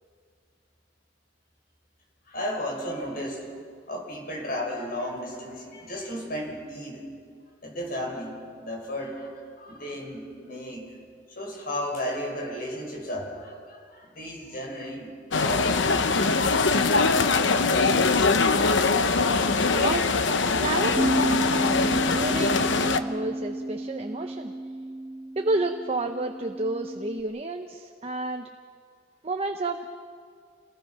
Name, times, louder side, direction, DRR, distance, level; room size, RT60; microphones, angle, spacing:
voice 1, 2.3-3.4 3.9-7.1 7.6-10.9 11.4-16.4 16.7-17.2 17.7-18.1, equal, 50° left, 0 dB, 5.9 m, -34 dB
sound 1, 15.3-23.0, left 4 dB, 75° left, 1.0 m, -22 dB
voice 2, 19.7-20.2 20.5-21.1 21.7-24.5 25.4-28.5 29.2-29.9, right 2 dB, 30° right, 4 dB, 0.9 m, -30 dB
Bass guitar, 21.0-27.2, right 1 dB, 15° right, 1.3 m, -31 dB
29.0 x 20.0 x 5.8 m, 2.1 s
head